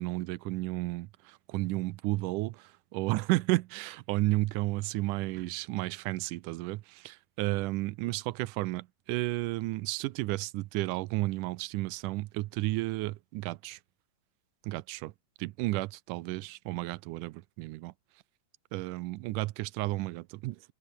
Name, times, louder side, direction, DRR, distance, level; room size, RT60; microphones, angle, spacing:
voice 1, 0.0-13.8 14.6-15.1 15.4-17.9 18.7-20.6, right 19 dB, 80° right, 2.0 m, -32 dB
omnidirectional pair, 4.0 m